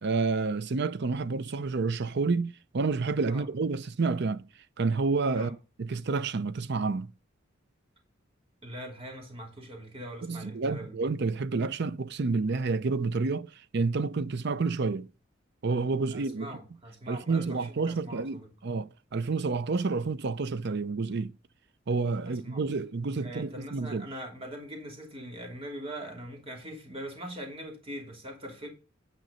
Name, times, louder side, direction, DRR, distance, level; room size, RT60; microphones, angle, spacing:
voice 1, 0.0-4.4 4.8-7.1 10.3-15.1 15.6-16.5 17.1-21.3 21.9-24.1, right 4 dB, 60° right, 0.6 m, -29 dB
voice 2, 8.6-10.9 16.1-18.5 22.2-22.6 23.2-28.7, right 1 dB, 30° right, 3.0 m, -42 dB
9.3 x 5.3 x 5.4 m
head